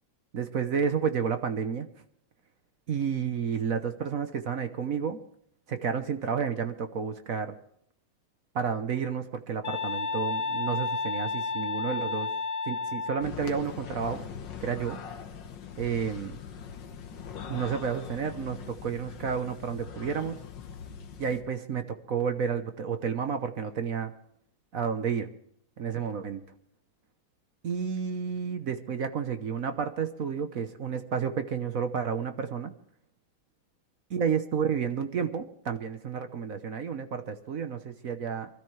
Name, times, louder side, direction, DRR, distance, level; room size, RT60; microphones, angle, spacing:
voice 1, 0.3-1.9 2.9-5.2 5.7-7.6 8.5-12.3 12.7-14.2 14.6-15.0 15.8-16.4 17.5-20.4 21.2-24.1 24.7-25.3 25.8-26.5 27.6-32.7 34.1-38.5, right 6 dB, 50° right, 9 dB, 1.1 m, -31 dB
sound 1, 9.6-13.3, left 4 dB, 80° left, 0.5 m, -31 dB
sound 2, 13.2-21.4, left 7 dB, 60° left, 1.8 m, -42 dB
25.0 x 13.0 x 3.2 m, 0.68 s
omnidirectional pair, 2.3 m